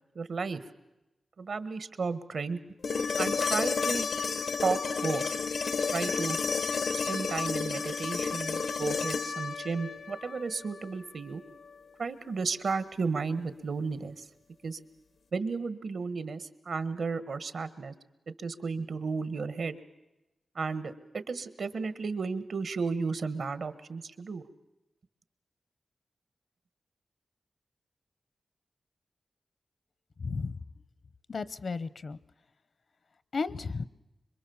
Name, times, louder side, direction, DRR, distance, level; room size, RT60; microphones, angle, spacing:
voice 1, 0.1-0.6 1.4-2.6 3.2-4.1 4.6-5.3 5.9-6.4 6.9-11.4 12.0-14.2 14.6-14.8 15.3-17.9 18.4-19.8 20.5-24.4, right 4 dB, 75° right, 13 dB, 1.5 m, -33 dB
sound 1, 2.8-10.9 13.0-13.1, left 5 dB, 85° left, 1.1 m, -31 dB
voice 2, 30.2-30.6 31.3-32.2 33.3-33.9, left 4 dB, 60° left, 17 dB, 0.8 m, -33 dB
26.0 x 23.0 x 7.1 m, 0.97 s
wide cardioid pair, 105°, 0 cm